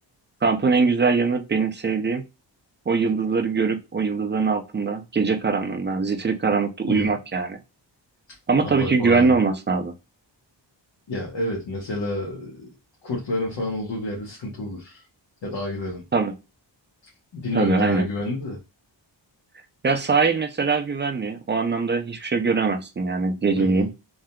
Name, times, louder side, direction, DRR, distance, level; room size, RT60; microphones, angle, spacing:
voice 1, 0.4-2.2 2.9-7.6 8.5-9.9 16.1-16.3 17.5-18.1 19.8-23.9, right 4 dB, 25° right, 6 dB, 0.4 m, -22 dB
voice 2, 8.6-9.4 11.1-12.7 13.0-15.0 15.4-16.0 17.3-18.6 23.6-23.9, left 1 dB, 70° left, -2 dB, 1.1 m, -29 dB
3.5 x 2.7 x 2.2 m, 0.26 s
wide cardioid pair, 125°, 44 cm